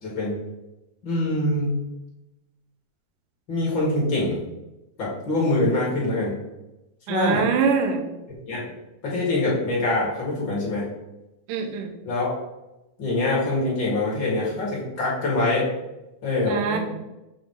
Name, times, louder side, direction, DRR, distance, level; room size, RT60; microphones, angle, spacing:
voice 1, 0.0-0.4 1.0-1.8 3.5-4.4 5.0-6.4 7.1-7.5 8.5-8.6 9.0-10.9 12.1-12.4 13.0-15.7 16.2-16.8, left 2 dB, 45° left, -5 dB, 1.8 m, -24 dB
voice 2, 7.1-8.0 11.5-11.9 16.5-16.8, right 6 dB, 75° right, 4 dB, 2.2 m, -23 dB
7.2 x 4.1 x 4.6 m, 0.97 s
omnidirectional pair, 4.2 m